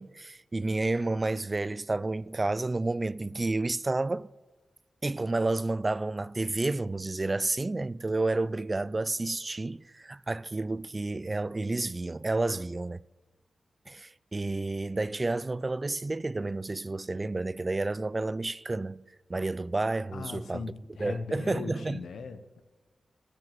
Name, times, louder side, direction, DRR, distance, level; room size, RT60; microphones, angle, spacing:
voice 1, 0.0-4.3 5.0-13.0 13.9-19.0 19.3-20.6 21.0-22.0, right 2 dB, 35° right, 0.3 m, -30 dB
voice 2, 20.1-22.6, left 4 dB, 85° left, 0.8 m, -39 dB
15.0 x 5.2 x 9.0 m
cardioid pair, 45°, 0 cm